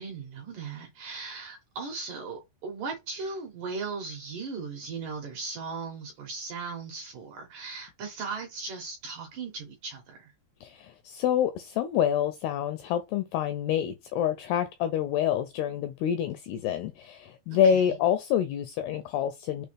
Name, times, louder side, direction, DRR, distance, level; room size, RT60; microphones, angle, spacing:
voice 1, 0.0-10.3 17.5-18.0, right 4 dB, 70° right, 2.1 m, -38 dB
voice 2, 10.6-19.7, left 9 dB, 85° left, 2.3 m, -27 dB
6.6 x 2.3 x 3.3 m
omnidirectional pair, 5.1 m